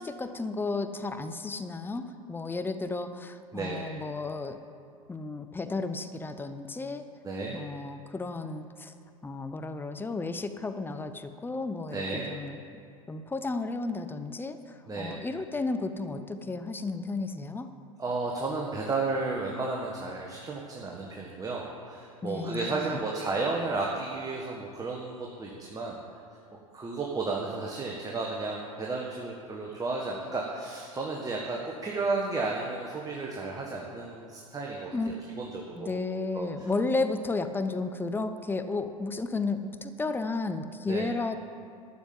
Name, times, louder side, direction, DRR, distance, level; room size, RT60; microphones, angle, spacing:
voice 1, 0.0-4.6 5.1-7.1 7.5-8.9 9.2-12.6 13.1-17.7 22.2-23.0 34.9-35.1 35.8-41.4, left 3 dB, 10° left, 9 dB, 0.8 m, -33 dB
voice 2, 3.5-4.0 7.2-7.6 11.9-12.3 14.9-15.2 18.0-26.0 26.7-36.0 36.3-36.7 40.9-41.1, right 3 dB, 20° right, -2 dB, 1.6 m, -33 dB
12.5 x 7.3 x 7.6 m, 2.4 s
hypercardioid pair, 85°, 18 cm